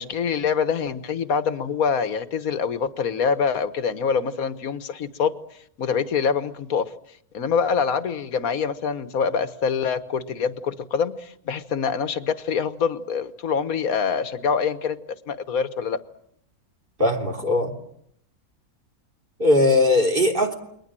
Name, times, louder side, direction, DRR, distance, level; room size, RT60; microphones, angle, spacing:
voice 1, 0.0-6.9 7.3-15.0 15.3-16.0, left 6 dB, 65° left, 12 dB, 1.7 m, -25 dB
voice 2, 17.0-17.7 19.4-20.6, left 2 dB, 35° right, 1 dB, 3.4 m, -19 dB
29.5 x 22.0 x 7.6 m, 0.72 s
omnidirectional pair, 1.6 m